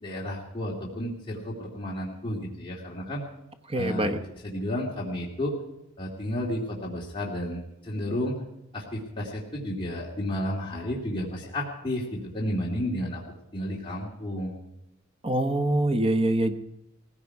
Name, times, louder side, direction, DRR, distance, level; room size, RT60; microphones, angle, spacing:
voice 1, 0.0-3.2 3.7-5.5 6.0-8.4 8.7-13.2 13.5-14.6, left 1 dB, 25° left, -4 dB, 2.5 m, -32 dB
voice 2, 3.7-4.2 15.2-16.5, right 1 dB, 30° right, 8 dB, 1.1 m, -24 dB
18.5 x 15.5 x 4.8 m, 0.90 s
head